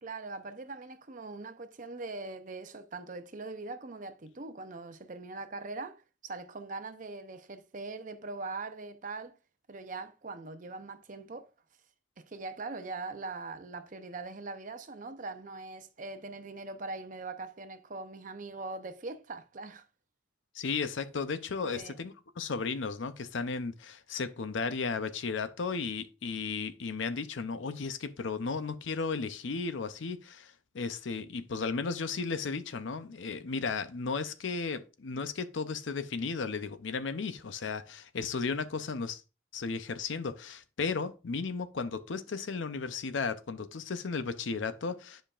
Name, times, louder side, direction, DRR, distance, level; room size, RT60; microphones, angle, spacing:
voice 1, 0.0-9.3 9.7-11.5 12.2-19.8 21.6-22.0, right 3 dB, 40° right, 0.6 m, -41 dB
voice 2, 20.5-39.2 39.5-45.2, left 4 dB, 75° left, 0.6 m, -34 dB
9.9 x 5.1 x 2.4 m
head